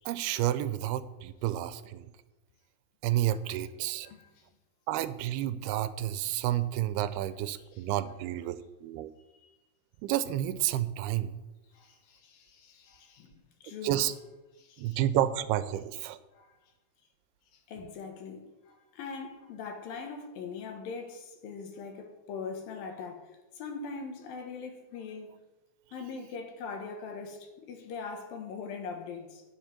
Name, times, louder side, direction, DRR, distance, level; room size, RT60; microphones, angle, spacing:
voice 1, 0.1-2.1 3.0-4.1 4.9-9.1 10.0-11.3 13.8-14.1 14.8-16.2, right 13 dB, 90° right, 2.6 m, -30 dB
voice 2, 4.0-4.5 7.6-7.8 9.4-9.5 11.7-14.1 14.6-15.0 16.3-16.6 17.5-25.4 25.9-29.4, left 5 dB, 70° left, 2.8 m, -42 dB
10.0 x 7.3 x 5.8 m
omnidirectional pair, 4.5 m